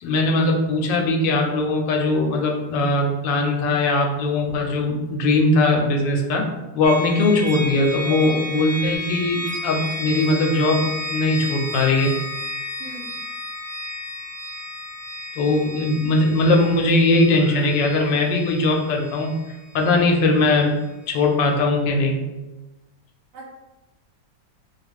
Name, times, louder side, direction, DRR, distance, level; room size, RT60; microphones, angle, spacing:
voice 1, 0.0-6.5 6.7-12.1 15.4-19.3 19.7-20.8 21.1-22.2, left 2 dB, 80° left, 2 dB, 1.2 m, -20 dB
sound 1, 6.8-20.6, left 1 dB, 65° right, 1.2 m, -33 dB
voice 2, 8.0-8.4 12.8-13.0 23.3-23.5, right 4 dB, 80° right, -2 dB, 1.4 m, -35 dB
2.9 x 2.4 x 3.3 m, 1.1 s
omnidirectional pair, 2.0 m